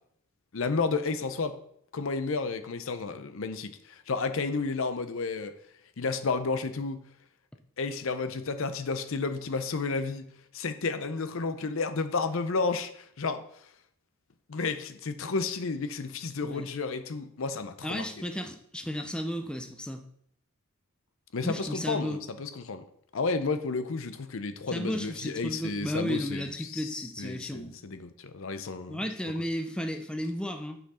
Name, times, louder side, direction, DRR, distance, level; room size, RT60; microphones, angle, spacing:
voice 1, 0.5-1.6 1.9-5.5 6.0-7.0 7.8-10.3 10.5-13.4 14.5-18.1 21.3-22.8 23.1-29.0, left 4 dB, 65° left, 0.6 m, -32 dB
voice 2, 17.8-20.1 21.4-22.2 24.7-27.7 28.9-30.8, equal, 5° left, 0.5 m, -34 dB
6.2 x 5.8 x 4.2 m
head